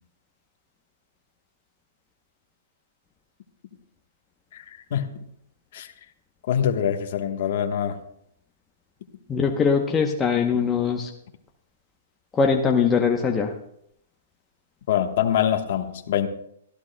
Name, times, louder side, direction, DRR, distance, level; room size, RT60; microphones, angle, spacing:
voice 1, 4.5-5.2 5.7-5.9 6.5-8.0 14.9-16.3, left 9 dB, 55° left, 1.2 m, -24 dB
voice 2, 9.3-11.1 12.3-13.5, left 6 dB, 15° left, 0.8 m, -21 dB
24.5 x 13.5 x 2.2 m
hypercardioid pair, 150°, 0 cm